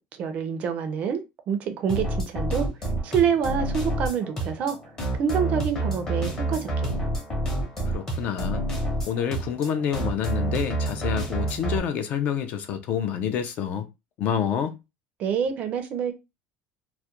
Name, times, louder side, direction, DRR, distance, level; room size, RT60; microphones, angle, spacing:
voice 1, 0.1-2.7 3.0-4.8 5.2-7.1 15.2-16.1, right 7 dB, 35° right, 0.4 m, -27 dB
sound 1, 1.9-11.8, right 1 dB, 20° left, 0.7 m, -28 dB
voice 2, 7.9-8.7 9.1-13.9 14.2-14.8, left 8 dB, 40° left, 0.3 m, -28 dB
2.3 x 2.1 x 2.9 m
cardioid pair, 170°, 4 cm